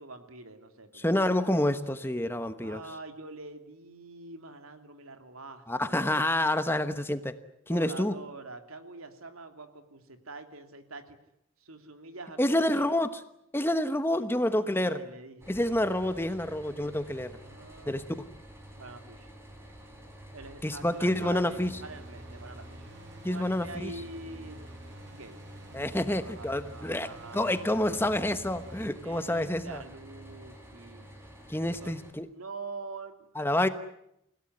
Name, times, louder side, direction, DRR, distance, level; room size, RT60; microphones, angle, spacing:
voice 1, 0.0-1.1 2.6-5.9 7.7-11.2 11.6-13.0 14.1-15.6 17.4-18.1 18.8-19.3 20.3-22.9 23.3-24.7 25.1-25.4 26.0-27.6 28.9-31.1 31.8-31.9 32.3-33.3, right 3 dB, 85° right, 7 dB, 2.9 m, -45 dB
voice 2, 1.0-2.8 5.7-7.4 7.7-8.2 12.4-13.2 13.5-15.0 15.5-17.3 17.9-18.0 20.6-21.7 23.2-23.9 25.7-29.8 31.5-32.3 33.4-33.7, left 1 dB, 10° left, 10 dB, 1.1 m, -28 dB
sound 1, 15.4-32.1, right 1 dB, 10° right, 5.0 m, -50 dB
sound 2, 20.9-28.9, right 1 dB, 50° right, 1.6 m, -48 dB
29.0 x 17.0 x 9.7 m, 0.79 s
head